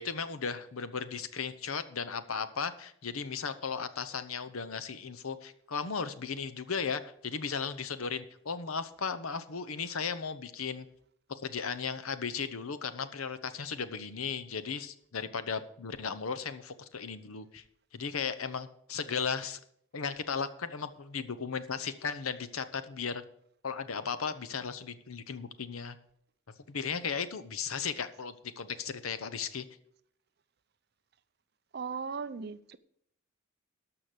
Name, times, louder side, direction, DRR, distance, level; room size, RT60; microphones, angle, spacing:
voice 1, 0.0-10.9 11.3-17.6 17.9-19.6 19.9-23.2 23.6-26.0 26.7-29.7, left 6 dB, 85° left, 12 dB, 0.8 m, -36 dB
voice 2, 31.7-32.8, right 5 dB, 50° right, 14 dB, 0.5 m, -37 dB
12.5 x 5.9 x 6.6 m, 0.69 s
head